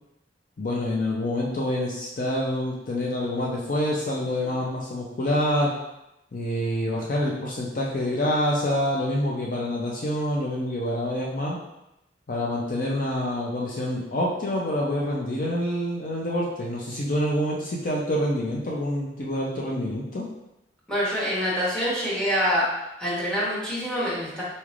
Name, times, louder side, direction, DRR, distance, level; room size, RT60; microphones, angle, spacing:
voice 1, 0.6-5.7 6.3-11.6 12.3-20.3, left 1 dB, 50° left, -3 dB, 0.5 m, -27 dB
voice 2, 20.9-22.7 23.0-24.4, equal, 5° left, -7 dB, 1.2 m, -26 dB
4.2 x 3.2 x 2.4 m, 0.89 s
head